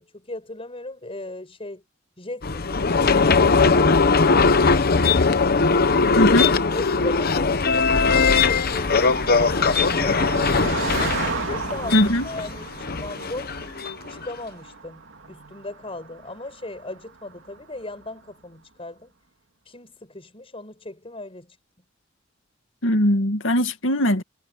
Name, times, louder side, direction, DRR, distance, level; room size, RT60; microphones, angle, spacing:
voice 1, 0.0-1.8 2.2-4.1 4.5-5.0 6.4-11.1 11.5-13.5 14.1-19.1 19.6-21.6, left 2 dB, 30° left, 6.3 m, -37 dB
sound 1, 2.4-14.2, left 4 dB, 50° left, 1.0 m, -20 dB
Car passing by, 4.4-18.1, right 4 dB, 85° right, 2.7 m, -35 dB
voice 2, 6.2-6.5 11.9-12.3 22.8-24.2, equal, 90° left, 2.2 m, -20 dB
head